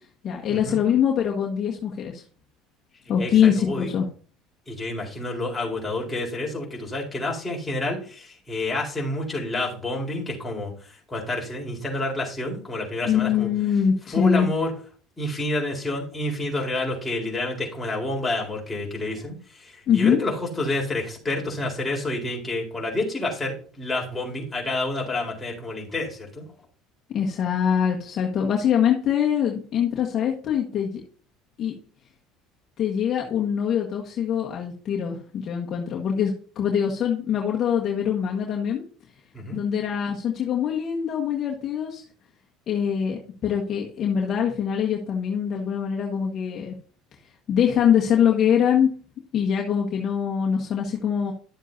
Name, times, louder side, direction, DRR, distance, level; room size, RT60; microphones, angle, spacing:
voice 1, 0.2-2.2 3.1-4.0 13.1-14.5 19.9-20.2 27.1-31.0 31.6-31.7 32.8-38.8 39.5-42.0 42.7-46.8 47.5-48.9 49.3-51.3, left 8 dB, 45° left, -1 dB, 1.7 m, -23 dB
voice 2, 3.2-3.9 4.7-13.5 14.1-14.7 15.2-26.4 39.3-39.6, left 2 dB, 15° left, -2 dB, 4.3 m, -29 dB
12.0 x 7.3 x 2.8 m, 0.41 s
supercardioid pair, 90°, 0 cm